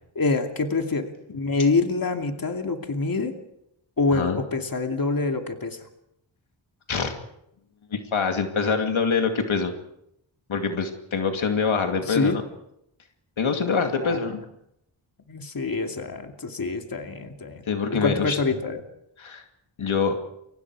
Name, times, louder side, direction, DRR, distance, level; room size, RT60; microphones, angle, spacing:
voice 1, 0.2-3.3 4.0-5.8 12.1-12.4 14.0-14.2 15.3-17.6 17.9-18.8, left 3 dB, 45° left, 4 dB, 2.6 m, -26 dB
voice 2, 7.9-9.7 10.5-12.4 13.4-14.4 17.7-18.4 19.2-19.4 19.8-20.2, left 5 dB, 80° left, 4 dB, 2.5 m, -25 dB
29.5 x 24.5 x 4.8 m, 0.79 s
wide cardioid pair, 105°, 46 cm